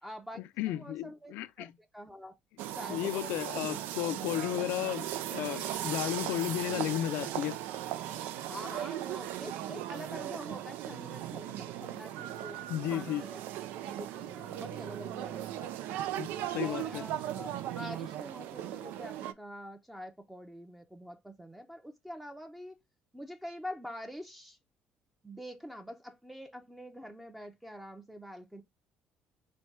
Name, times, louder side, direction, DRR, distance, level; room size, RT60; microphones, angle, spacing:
voice 1, 0.0-2.4 2.7-3.4 3.8-3.9 8.5-12.6 12.9-13.4 13.8-15.8 16.5-22.8 23.1-24.6 25.2-28.6, equal, 5° right, 0.6 m, -45 dB
voice 2, 0.6-1.7 2.9-7.6 12.7-13.2 16.2-17.0, left 14 dB, 85° left, 0.4 m, -34 dB
sound 1, 2.6-19.3, right 12 dB, 85° right, 0.4 m, -38 dB
4.2 x 2.3 x 4.5 m
cardioid pair, 115°, 3 cm